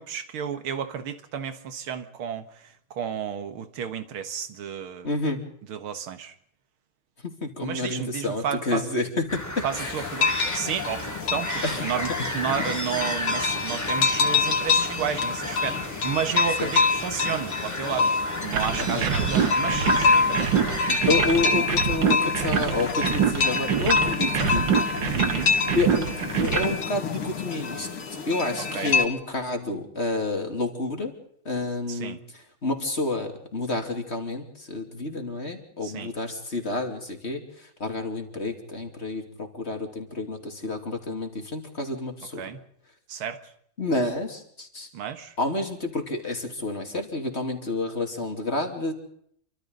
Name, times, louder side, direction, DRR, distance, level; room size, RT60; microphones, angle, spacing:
voice 1, 0.0-5.1 5.7-6.3 7.6-8.9 9.6-21.1 25.1-25.5 28.7-29.0 31.9-32.2 35.8-36.1 42.4-42.6 43.1-43.4 44.9-45.3, right 8 dB, 85° right, 2.3 m, -32 dB
voice 2, 5.0-5.4 7.2-10.1 11.6-11.8 16.6-16.7 18.8-19.1 21.1-24.7 25.7-26.1 26.4-27.9 28.2-31.1 31.4-42.4 43.8-44.9 45.4-48.9, left 2 dB, 30° left, 3.1 m, -29 dB
sound 1, 9.3-21.0, left 1 dB, 10° left, 2.4 m, -34 dB
sound 2, 9.8-29.1, left 4 dB, 80° left, 2.8 m, -26 dB
sound 3, 18.5-26.7, right 8 dB, 65° right, 1.9 m, -26 dB
28.0 x 25.0 x 3.9 m
omnidirectional pair, 2.3 m